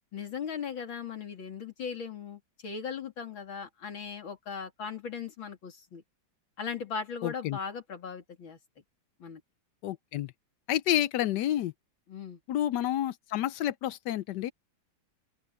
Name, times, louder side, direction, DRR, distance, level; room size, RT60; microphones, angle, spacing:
voice 1, 0.1-6.0 6.6-8.6 9.2-9.4 12.1-12.4, left 6 dB, 85° left, 3.6 m, -38 dB
voice 2, 7.2-7.6 9.8-10.3 10.7-11.7 12.5-14.5, left 12 dB, 70° left, 1.1 m, -29 dB
open air
omnidirectional pair, 2.1 m